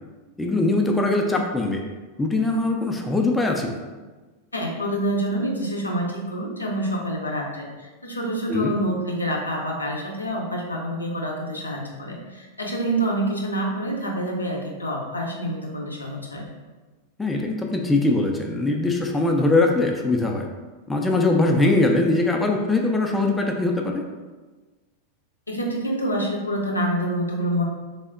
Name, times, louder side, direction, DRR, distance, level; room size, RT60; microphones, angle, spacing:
voice 1, 0.4-1.8 2.2-3.7 8.5-8.7 17.2-20.5 20.9-24.0, left 2 dB, 10° left, 1 dB, 0.4 m, -21 dB
voice 2, 4.5-16.5 25.5-27.6, right 1 dB, 80° left, -1 dB, 0.6 m, -27 dB
3.4 x 2.1 x 3.7 m, 1.3 s
figure-of-eight pair, 90°, 0 cm